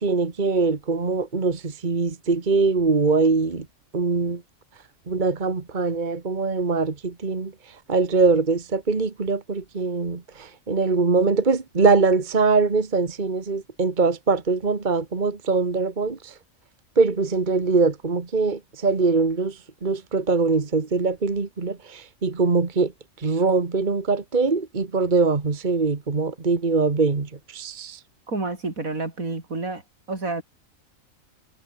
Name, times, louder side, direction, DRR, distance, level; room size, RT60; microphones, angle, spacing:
voice 1, 0.0-3.7 3.9-4.4 5.1-7.5 7.9-16.3 17.0-22.9 23.2-28.0, right 4 dB, 35° right, 1.8 m, -22 dB
voice 2, 28.3-29.8 30.1-30.4, right 3 dB, 80° right, 4.7 m, -29 dB
omnidirectional pair, 1.4 m